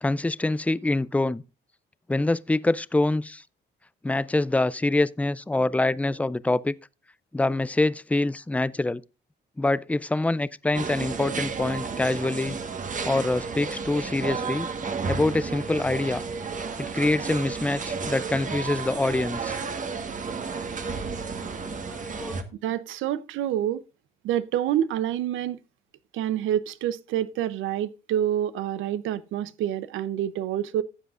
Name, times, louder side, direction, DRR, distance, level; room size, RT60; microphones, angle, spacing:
voice 1, 0.0-1.4 2.1-3.4 4.0-6.7 7.3-9.0 9.6-12.6 13.0-14.7 15.1-16.2 16.8-19.6 21.6-22.4, left 2 dB, 5° left, 0.4 m, -25 dB
sound 1, 10.7-22.4, right 5 dB, 40° right, 1.3 m, -32 dB
voice 2, 22.6-23.8 24.2-25.6 26.1-30.8, right 11 dB, 85° right, 0.7 m, -27 dB
14.5 x 8.0 x 2.4 m
cardioid pair, 90°, 20 cm